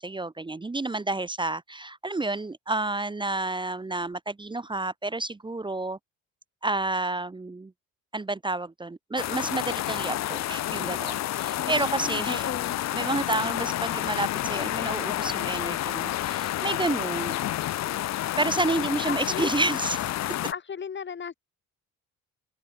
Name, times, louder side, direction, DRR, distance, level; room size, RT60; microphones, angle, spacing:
voice 1, 0.0-6.0 6.6-7.7 8.1-12.5 12.9-17.4 18.4-20.1, right 2 dB, 15° right, 0.8 m, -30 dB
sound 1, 9.2-20.5, left 14 dB, 60° left, 0.6 m, -29 dB
voice 2, 11.5-12.7 18.5-19.5 20.3-21.3, left 6 dB, 40° left, 1.6 m, -36 dB
open air
cardioid pair, 90°, 30 cm